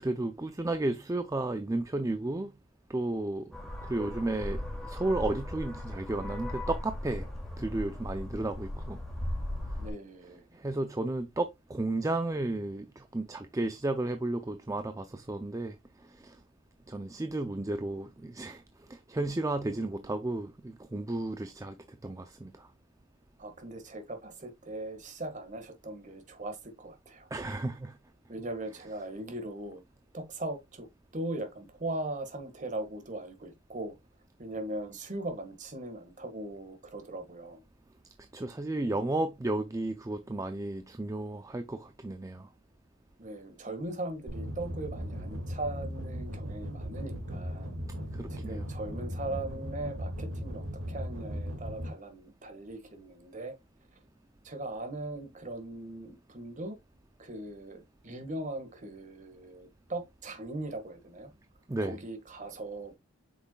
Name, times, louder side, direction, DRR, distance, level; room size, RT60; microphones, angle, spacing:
voice 1, 0.0-2.5 2.9-7.3 7.6-9.0 10.5-15.8 16.0-16.4 16.9-22.7 27.3-28.0 38.3-42.5 48.1-48.7 61.7-62.0, right 2 dB, 15° right, 0.4 m, -33 dB
sound 1, 3.5-9.9, left 1 dB, ahead, 2.3 m, -37 dB
voice 2, 9.8-10.5 19.6-20.2 23.4-27.3 28.3-29.8 30.1-30.9 31.1-33.9 34.4-37.6 43.2-47.7 48.3-53.5 54.4-56.8 57.2-61.3 61.8-63.0, right 2 dB, 35° right, 1.5 m, -39 dB
sound 2, 44.3-51.9, equal, 65° right, 2.0 m, -37 dB
8.0 x 6.0 x 2.3 m
head